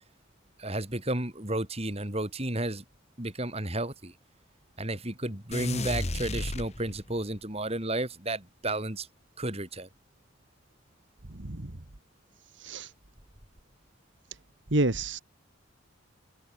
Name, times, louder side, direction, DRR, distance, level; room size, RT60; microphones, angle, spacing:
voice 1, 0.6-2.8 3.2-4.1 4.8-9.1 9.4-9.9, right 1 dB, 30° right, 3.8 m, -32 dB
sound 1, 5.5-7.3, left 2 dB, 30° left, 1.6 m, -33 dB
voice 2, 11.4-11.7 12.6-12.9 14.7-15.2, right 2 dB, 60° right, 1.7 m, -28 dB
head